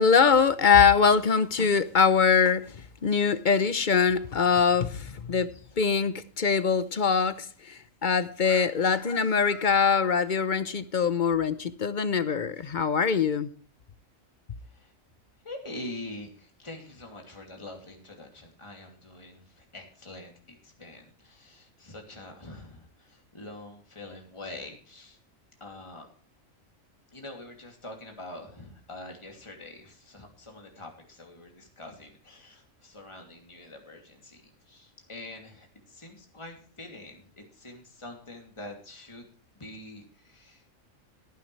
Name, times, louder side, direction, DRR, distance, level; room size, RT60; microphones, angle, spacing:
voice 1, 0.0-5.5 5.8-13.5, left 6 dB, 45° left, 14 dB, 0.8 m, -23 dB
voice 2, 15.4-25.2 25.6-26.1 27.1-39.3 39.5-40.9, left 2 dB, 20° left, 1 dB, 2.8 m, -45 dB
18.0 x 10.5 x 3.3 m, 0.43 s
omnidirectional pair, 1.4 m